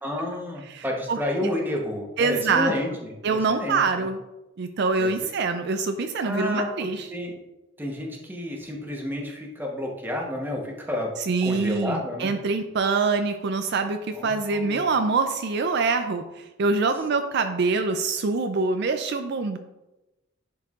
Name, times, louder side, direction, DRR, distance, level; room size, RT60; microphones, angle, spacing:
voice 1, 0.0-4.1 5.0-5.1 6.2-7.4 7.8-11.2 11.4-12.3 14.1-14.8, left 1 dB, 10° right, 0 dB, 0.9 m, -30 dB
voice 2, 0.7-1.5 2.2-2.7 3.2-4.2 4.6-7.1 11.3-19.6, right 4 dB, 55° right, 7 dB, 0.4 m, -25 dB
10.5 x 4.6 x 2.4 m, 1.0 s
head